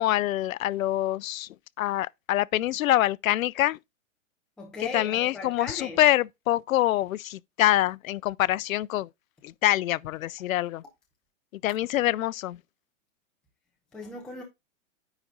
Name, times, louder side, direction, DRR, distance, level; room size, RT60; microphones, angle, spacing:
voice 1, 0.0-1.5 1.8-3.8 4.8-9.1 9.4-10.8 11.6-12.6, left 14 dB, 85° left, 0.5 m, -25 dB
voice 2, 4.6-6.0 13.9-14.4, left 3 dB, ahead, 0.6 m, -37 dB
9.8 x 4.1 x 3.6 m
hypercardioid pair, 160°, 40 cm